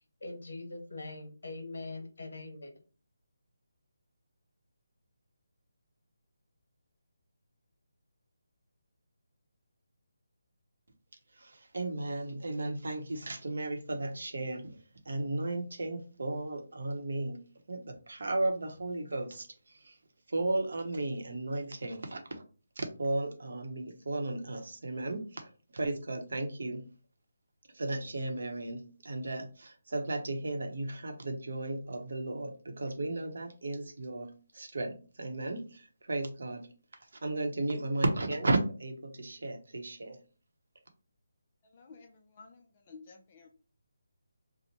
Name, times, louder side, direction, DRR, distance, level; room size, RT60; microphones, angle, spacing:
voice 1, 0.2-2.8, left 2 dB, 65° left, 5 dB, 0.9 m, -42 dB
voice 2, 11.3-17.4 17.7-20.0 20.3-22.4 22.8-26.8 27.7-36.7 36.9-40.2, right 2 dB, 60° right, 5 dB, 0.8 m, -35 dB
voice 3, 41.6-43.5, left 4 dB, 20° left, 3 dB, 0.4 m, -53 dB
2.9 x 2.0 x 4.0 m, 0.37 s
hypercardioid pair, 175°, 0 cm